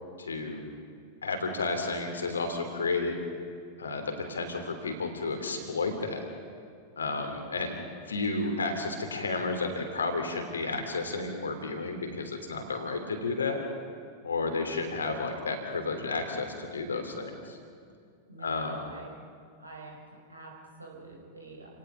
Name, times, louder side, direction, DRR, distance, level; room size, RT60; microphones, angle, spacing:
voice 1, 0.2-0.6 1.2-3.2 3.8-6.2 7.0-7.8 8.1-13.6 14.2-17.6 18.4-18.8, left 3 dB, 75° left, 5 dB, 3.2 m, -32 dB
voice 2, 18.3-19.1 19.6-21.8, right 2 dB, 85° right, -1 dB, 4.8 m, -46 dB
29.0 x 18.5 x 5.7 m, 2.2 s
figure-of-eight pair, 90°, 0 cm